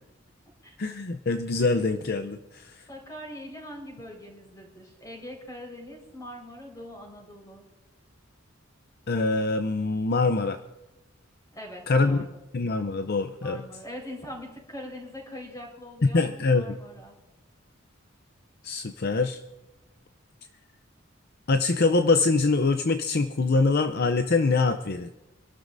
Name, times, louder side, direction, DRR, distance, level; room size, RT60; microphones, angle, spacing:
voice 1, 0.8-2.8 9.1-10.6 11.9-12.3 12.5-13.6 16.1-16.8 18.6-19.4 21.5-25.1, left 3 dB, 50° left, 7 dB, 0.6 m, -24 dB
voice 2, 2.9-7.6 11.5-12.2 13.4-17.1, left 1 dB, 20° left, -1 dB, 4.6 m, -42 dB
26.0 x 12.5 x 2.6 m, 0.98 s
head